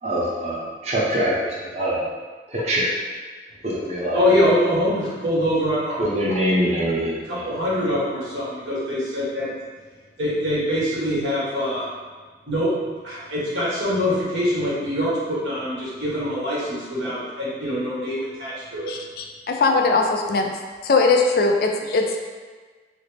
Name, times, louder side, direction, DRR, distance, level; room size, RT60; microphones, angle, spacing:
voice 1, 0.0-2.0 2.5-3.0 3.6-4.2 6.0-7.5, equal, 35° right, -5 dB, 0.6 m, -24 dB
voice 2, 4.1-6.0 7.4-9.5 10.2-11.8 12.5-12.7 13.0-18.9, left 1 dB, 85° right, -7 dB, 1.2 m, -24 dB
voice 3, 18.9-20.5 20.8-22.3, left 3 dB, 55° left, 3 dB, 0.3 m, -20 dB
3.9 x 2.0 x 3.2 m, 1.4 s
head